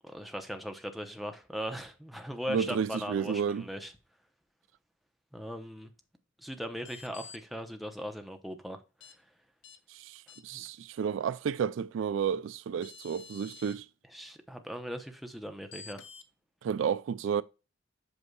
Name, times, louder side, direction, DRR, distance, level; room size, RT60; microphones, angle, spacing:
voice 1, 0.0-3.9 5.3-5.9 6.4-8.8 10.5-10.6 14.1-16.0, equal, ahead, 0.7 m, -39 dB
voice 2, 2.5-3.6 9.9-13.9 16.6-17.4, right 7 dB, 70° right, 0.3 m, -31 dB
sound 1, 6.8-7.4 9.0-9.1 9.6-9.8 10.3-10.7 12.3-12.4 12.8-13.8 15.7-16.3, left 6 dB, 65° left, 0.7 m, -49 dB
8.0 x 5.4 x 2.3 m
head